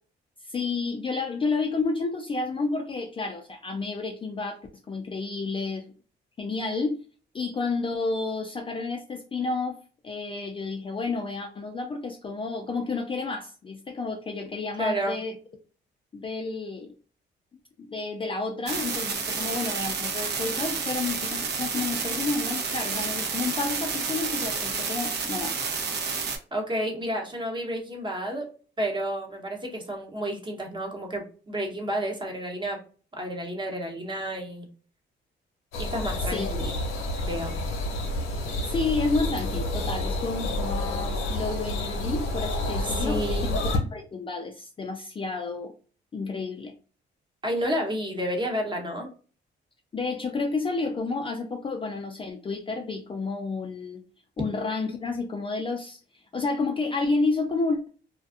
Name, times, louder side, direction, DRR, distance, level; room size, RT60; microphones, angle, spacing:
voice 1, 0.4-5.9 6.4-7.0 7.3-9.8 10.0-15.4 16.1-16.9 17.8-25.7 36.2-36.5 38.7-45.7 46.1-46.7 49.9-54.0 54.4-57.9, left 3 dB, 25° left, 0.4 m, -30 dB
voice 2, 14.8-15.2 26.5-28.5 28.8-32.8 33.1-34.7 35.8-36.8 37.2-37.5 42.8-43.5 47.4-49.1, equal, 25° right, 1.0 m, -30 dB
sound 1, 18.7-26.4, right 5 dB, 55° right, 0.7 m, -30 dB
sound 2, 35.7-43.8, left 1 dB, 90° left, 0.8 m, -29 dB
2.5 x 2.3 x 2.4 m
cardioid pair, 90°, 20 cm